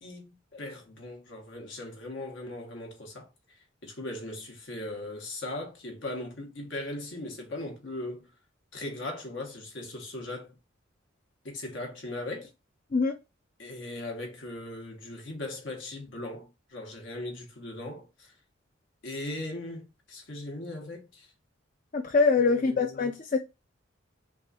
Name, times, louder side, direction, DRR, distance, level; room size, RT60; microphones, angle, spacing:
voice 1, 0.0-3.3 3.8-8.3 8.7-10.5 11.4-12.5 13.6-18.3 19.0-21.3 22.4-23.1, left 2 dB, 75° left, 1.3 m, -39 dB
voice 2, 21.9-23.4, left 4 dB, 45° left, 0.5 m, -24 dB
3.9 x 2.5 x 4.0 m
head